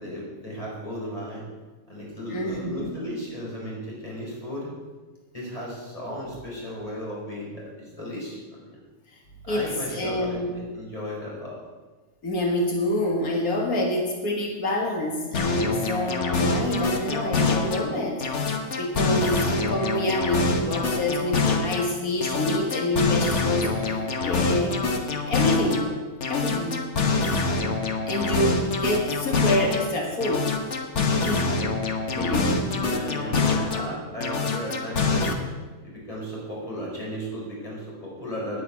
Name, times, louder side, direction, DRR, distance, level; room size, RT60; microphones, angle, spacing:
voice 1, 0.0-1.4 1.9-4.7 5.3-8.7 9.5-11.6 32.1-35.3 35.8-38.6, equal, 25° left, -4 dB, 5.1 m, -35 dB
voice 2, 2.3-2.9 9.5-10.5 12.2-24.8 25.3-25.9 26.3-26.9 28.1-30.5 31.0-31.6 32.2-32.6, left 1 dB, 90° left, 0 dB, 2.2 m, -27 dB
sound 1, 15.3-17.9 18.2-21.9 22.2-25.9 26.2-29.9 30.2-33.9 34.2-35.3, left 3 dB, 55° left, 1.5 m, -25 dB
10.0 x 9.2 x 8.4 m, 1.3 s
omnidirectional pair, 1.5 m